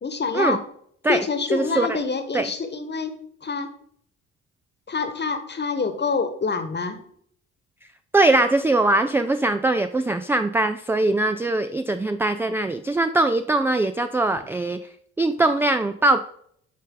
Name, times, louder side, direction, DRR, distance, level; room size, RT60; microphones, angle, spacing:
voice 1, 0.0-0.6 1.1-3.1 3.4-3.7 4.9-7.0, left 4 dB, 25° left, 9 dB, 1.3 m, -26 dB
voice 2, 1.5-2.0 2.3-2.5 8.1-14.8 15.2-16.2, right 2 dB, 5° right, 9 dB, 0.3 m, -21 dB
8.6 x 5.2 x 3.8 m, 0.65 s
figure-of-eight pair, 40°, 41 cm